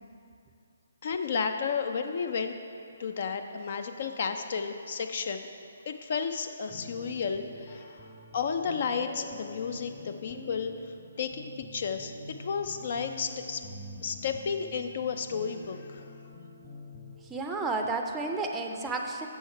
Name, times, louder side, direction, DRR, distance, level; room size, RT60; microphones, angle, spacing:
voice 1, 1.0-2.6 3.0-5.4 5.9-8.0 8.3-10.7 11.2-12.1 12.4-13.6 14.0-16.1, left 6 dB, 50° left, 7 dB, 0.4 m, -32 dB
sound 1, 6.7-17.2, left 2 dB, 25° left, 1.0 m, -47 dB
voice 2, 17.2-19.3, right 3 dB, 10° right, 2 dB, 0.5 m, -32 dB
6.9 x 6.3 x 4.5 m, 2.5 s
hypercardioid pair, 145°, 0 cm